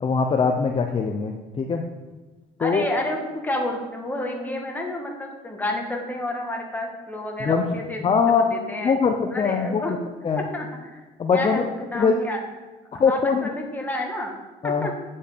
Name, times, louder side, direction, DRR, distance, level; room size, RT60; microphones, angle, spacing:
voice 1, 0.0-1.8 2.6-2.9 7.4-7.6 8.0-8.5 8.8-9.8 10.2-10.5 11.2-11.6 11.9-12.1 13.0-13.5 14.6-14.9, left 5 dB, 30° left, 4 dB, 0.7 m, -22 dB
voice 2, 2.6-8.9 9.3-9.9 10.4-11.0 11.3-12.4 12.9-14.3 14.6-14.9, left 1 dB, 10° left, 1 dB, 1.8 m, -30 dB
8.9 x 5.4 x 6.7 m, 1.2 s
cardioid pair, 110°, 17 cm